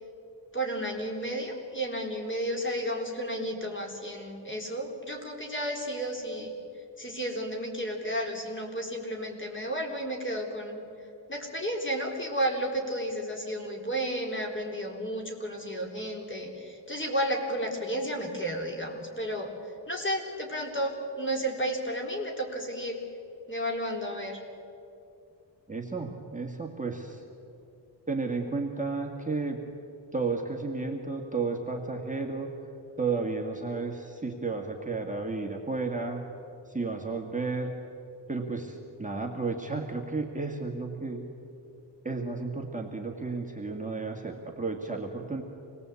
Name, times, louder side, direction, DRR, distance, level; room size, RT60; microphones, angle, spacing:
voice 1, 0.5-6.5 7.0-10.8 11.3-19.5 19.9-23.0 23.5-24.4, right 1 dB, 25° left, 1 dB, 3.8 m, -32 dB
voice 2, 25.7-27.2 28.1-29.6 30.1-32.5 33.0-36.2 36.7-37.8 38.3-41.2 42.0-45.4, right 3 dB, 15° right, 0 dB, 2.0 m, -32 dB
26.5 x 19.5 x 8.4 m, 2.7 s
wide cardioid pair, 115°, 45 cm